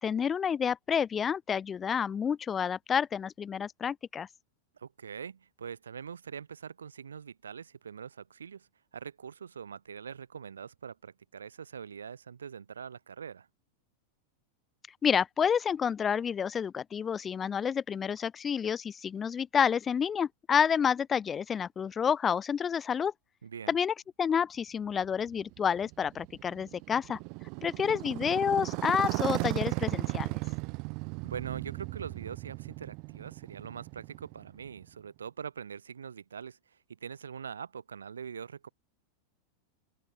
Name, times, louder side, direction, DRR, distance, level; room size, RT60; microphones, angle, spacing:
voice 1, 0.0-4.3 15.0-23.1 23.7-27.2 27.6-30.3, left 7 dB, 20° left, 0.8 m, -29 dB
voice 2, 4.7-13.5 23.4-23.8 31.2-38.7, right 7 dB, 70° right, 6.5 m, -43 dB
Motorcycle, 25.0-34.9, right 32 dB, 45° right, 3.3 m, -36 dB
open air
figure-of-eight pair, 90°, 0 cm